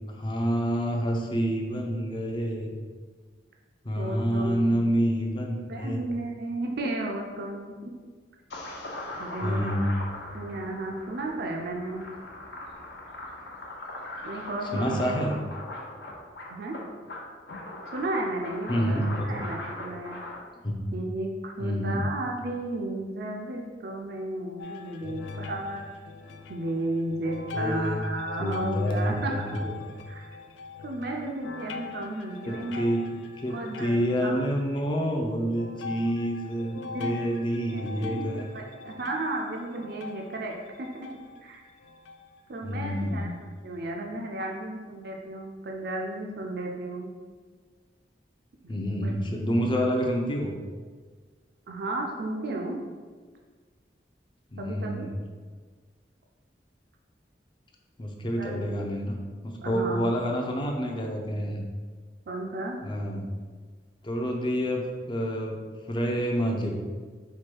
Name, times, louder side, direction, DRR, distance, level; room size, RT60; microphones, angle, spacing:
voice 1, 0.1-2.7 3.8-6.0 9.4-9.9 14.7-15.3 18.7-19.4 20.6-21.0 21.6-22.1 27.5-28.0 28.4-29.7 32.5-38.5 42.6-43.3 48.7-50.5 54.5-55.1 58.0-59.2 59.4-61.6 62.8-63.3 64.0-65.6 65.9-66.7, equal, 25° left, 1 dB, 0.5 m, -28 dB
voice 2, 4.0-4.6 5.7-7.9 9.2-9.6 10.3-12.0 14.2-15.1 16.5-16.8 17.9-19.0 19.2-20.2 20.9-25.9 26.5-29.6 30.1-30.3 30.8-32.9 33.4-34.4 36.9-37.2 37.7-41.6 42.5-43.3 43.6-47.1 48.6-49.1 51.7-52.8 54.6-55.1 58.4-58.6 59.6-60.1 62.3-62.8, right 2 dB, 60° right, 1 dB, 0.4 m, -34 dB
sound 1, 8.5-20.3, left 1 dB, 70° left, 0.8 m, -40 dB
sound 2, 24.6-34.8 35.5-42.5 43.1-43.2 43.9-44.0, left 4 dB, 85° left, 0.3 m, -41 dB
4.6 x 2.2 x 4.5 m, 1.5 s
head